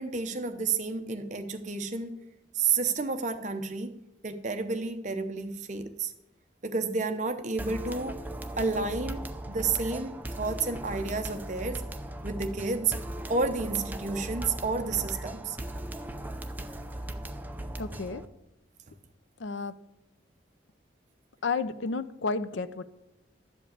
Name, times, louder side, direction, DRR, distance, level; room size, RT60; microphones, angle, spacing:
voice 1, 0.0-2.2 2.5-6.1 6.6-8.2 8.6-11.8 12.2-13.0 13.3-15.6, right 4 dB, 40° right, 0.8 m, -31 dB
sound 1, 7.6-18.3, right 1 dB, 10° right, 0.5 m, -38 dB
voice 2, 17.8-18.2 19.4-19.7 21.4-22.8, left 4 dB, 80° left, 0.6 m, -31 dB
12.0 x 5.3 x 8.4 m
head